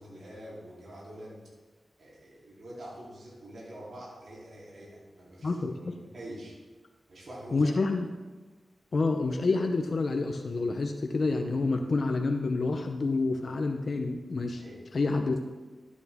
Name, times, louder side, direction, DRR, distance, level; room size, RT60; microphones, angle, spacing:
voice 1, 0.0-1.4 2.0-6.6 7.1-7.7 14.6-14.8 15.1-15.2, right 1 dB, 70° right, -6 dB, 3.4 m, -45 dB
voice 2, 5.4-6.0 7.5-8.1 8.9-14.6 14.9-15.4, left 3 dB, 60° left, 4 dB, 0.7 m, -28 dB
12.5 x 8.3 x 3.6 m, 1.3 s
cardioid pair, 55°, 0 cm